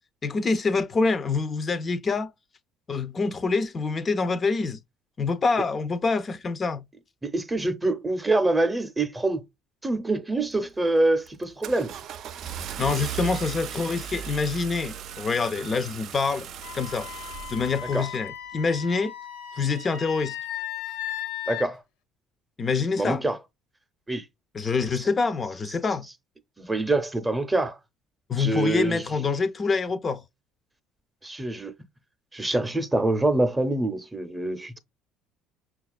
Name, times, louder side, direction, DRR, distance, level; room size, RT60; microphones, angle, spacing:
voice 1, 0.2-2.3 2.9-4.8 5.2-6.8 12.8-16.5 16.7-17.1 17.5-19.1 19.5-20.4 22.6-23.2 24.5-26.1 28.3-30.2, left 4 dB, 35° left, 0.4 m, -26 dB
voice 2, 7.2-9.4 9.8-12.0 17.9-18.1 21.5-21.8 23.0-23.4 24.1-24.2 24.9-25.1 26.6-27.8 28.4-29.0 31.2-31.7 32.3-34.8, right 2 dB, 15° right, 0.6 m, -25 dB
Car / Engine starting, 10.5-10.8 11.3-18.2, right 9 dB, 60° right, 0.3 m, -37 dB
Wind instrument woodwind instrument, 16.6-21.7, left 10 dB, 85° left, 0.6 m, -36 dB
5.7 x 2.3 x 2.3 m
supercardioid pair, 85°, 0 cm